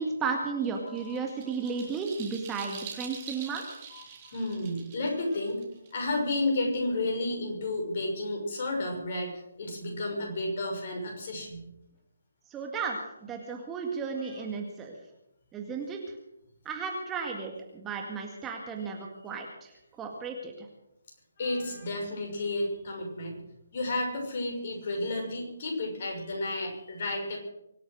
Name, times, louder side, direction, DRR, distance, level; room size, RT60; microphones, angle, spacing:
voice 1, 0.0-3.6 12.5-13.0 13.2-14.9 15.5-16.0 16.7-19.7 20.0-20.5, right 5 dB, 15° right, 1 dB, 2.0 m, -34 dB
sound 1, 0.6-6.4, right 7 dB, 30° right, 3.6 m, -45 dB
voice 2, 0.8-1.3 1.6-1.8 3.9-5.6 5.9-11.7 14.2-14.4 21.4-23.4 23.7-27.4, left 2 dB, 45° left, 1 dB, 6.3 m, -32 dB
24.5 x 8.7 x 6.5 m, 0.85 s
figure-of-eight pair, 150°, 0 cm